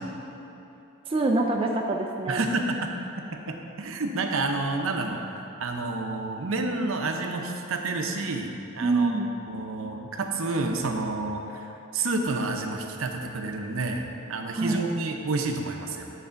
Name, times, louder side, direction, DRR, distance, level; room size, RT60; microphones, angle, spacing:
voice 1, 1.1-2.4 8.8-9.3 14.5-14.8, right 3 dB, 25° right, 1 dB, 0.4 m, -25 dB
voice 2, 2.3-2.9 3.5-5.2 5.6-9.1 9.5-16.1, right 3 dB, 70° right, 3 dB, 0.6 m, -29 dB
9.3 x 3.3 x 5.6 m, 2.9 s
head